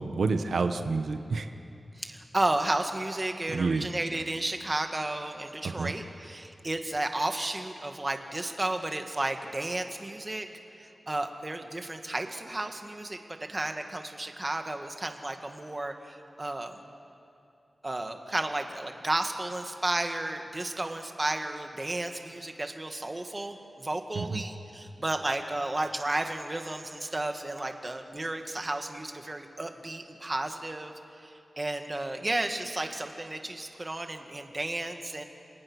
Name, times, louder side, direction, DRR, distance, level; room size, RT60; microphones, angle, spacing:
voice 1, 0.0-1.5 3.5-3.9 5.6-5.9 24.1-24.4, right 4 dB, 85° right, 7 dB, 1.1 m, -29 dB
voice 2, 2.0-10.5 10.8-16.8 17.8-35.2, right 2 dB, 25° right, 5 dB, 1.9 m, -33 dB
28.5 x 27.0 x 6.4 m, 2.7 s
wide cardioid pair, 95°, 0 cm